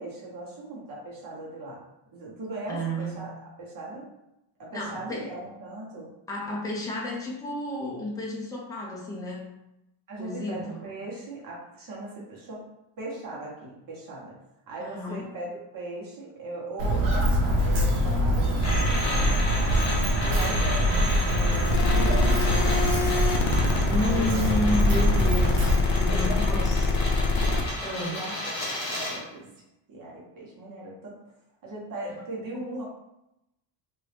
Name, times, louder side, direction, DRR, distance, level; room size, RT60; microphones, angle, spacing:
voice 1, 0.0-1.8 2.1-3.3 3.6-4.1 4.6-6.1 10.1-12.6 13.0-14.4 14.7-15.5 15.7-19.5 20.2-23.0 23.9-24.6 26.1-27.0 28.1-29.4 29.9-31.1 31.6-32.8, right 2 dB, 40° right, -4 dB, 1.1 m, -38 dB
voice 2, 2.7-3.3 4.7-5.3 6.3-9.5 10.2-10.8 14.8-15.3 23.9-26.9 27.8-28.2 32.5-32.6, left 1 dB, 10° left, -4 dB, 0.5 m, -31 dB
Walk footsteps, 16.8-25.8, equal, 65° right, 0.9 m, -24 dB
sound 1, 18.6-29.3, left 1 dB, 30° left, 1.0 m, -33 dB
sound 2, 21.7-27.6, left 3 dB, 65° left, 0.6 m, -25 dB
3.0 x 2.7 x 3.2 m, 0.88 s
cardioid pair, 160°, 50 cm